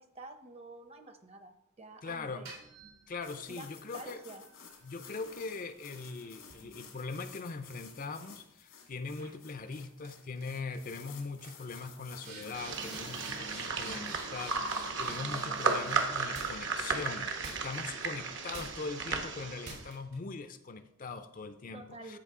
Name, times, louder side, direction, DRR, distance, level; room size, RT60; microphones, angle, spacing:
voice 1, 0.0-2.5 3.5-3.7 3.9-4.4 21.7-22.2, right 2 dB, 30° right, 8 dB, 0.8 m, -49 dB
voice 2, 2.0-2.5 3.1-4.2 4.8-22.2, left 4 dB, 40° left, 10 dB, 0.5 m, -41 dB
sound 1, 2.2-3.5 4.1-7.6 8.0-8.4 9.2-9.4 9.6-10.1 10.4-10.8 11.0-11.1 11.4-16.8 17.4-18.1 18.5-19.0 19.6-20.1, right 3 dB, 85° right, 3.4 m, -49 dB
sound 2, 3.2-13.4, left 6 dB, 90° left, 1.9 m, -54 dB
sound 3, 12.5-19.8, right 4 dB, 60° right, 1.1 m, -34 dB
13.5 x 5.1 x 3.7 m, 0.78 s
head